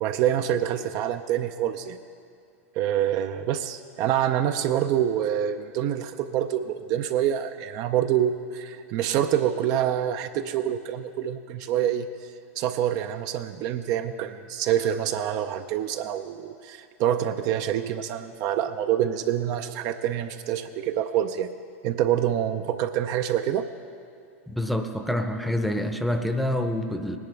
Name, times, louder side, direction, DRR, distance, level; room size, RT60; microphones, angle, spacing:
voice 1, 0.0-2.0 2.8-12.1 12.6-21.5 21.8-23.7, right 10 dB, 45° right, 8 dB, 0.5 m, -26 dB
voice 2, 24.5-27.2, left 1 dB, ahead, 6 dB, 0.7 m, -27 dB
19.0 x 10.5 x 3.4 m, 2.4 s
hypercardioid pair, 110°, 8 cm